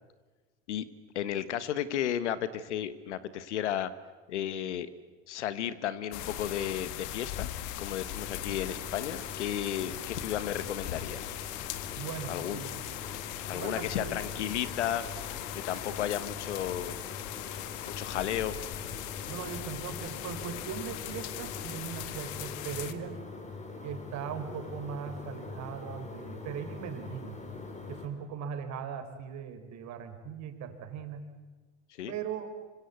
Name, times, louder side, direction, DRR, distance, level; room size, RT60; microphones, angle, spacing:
voice 1, 1.1-3.9 4.3-4.9 5.3-7.5 7.8-11.3 12.3-12.6 13.5-15.0 15.5-16.9 17.9-18.6 32.0-32.1, left 10 dB, 90° left, 15 dB, 1.4 m, -33 dB
sound 1, 6.1-22.9, left 13 dB, 60° left, 1.8 m, -39 dB
sound 2, 8.1-28.1, left 3 dB, 20° left, 5.0 m, -44 dB
voice 2, 12.0-12.9 13.5-14.2 19.3-23.2 23.8-27.4 27.9-31.3 32.1-32.5, right 7 dB, 55° right, 8 dB, 4.1 m, -39 dB
26.0 x 25.0 x 8.3 m, 1.3 s
hypercardioid pair, 85°, 34 cm